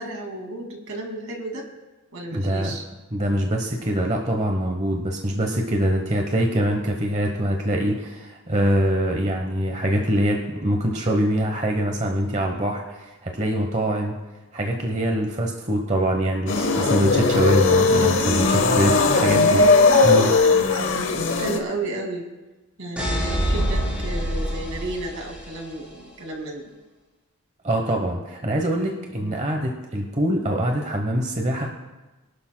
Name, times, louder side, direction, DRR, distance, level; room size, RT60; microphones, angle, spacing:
voice 1, 0.0-1.7 2.1-2.8 18.9-19.4 20.5-22.3 22.8-26.7 29.1-29.4, right 2 dB, 65° right, 2 dB, 2.3 m, -33 dB
voice 2, 2.3-2.8 3.1-14.1 14.5-19.7 20.0-20.3 27.6-31.7, equal, 30° right, 2 dB, 0.9 m, -24 dB
sound 1, 16.5-21.6, left 3 dB, 55° left, 1.0 m, -18 dB
sound 2, 23.0-25.8, equal, 5° right, 3.5 m, -26 dB
23.0 x 12.0 x 2.2 m, 1.1 s
head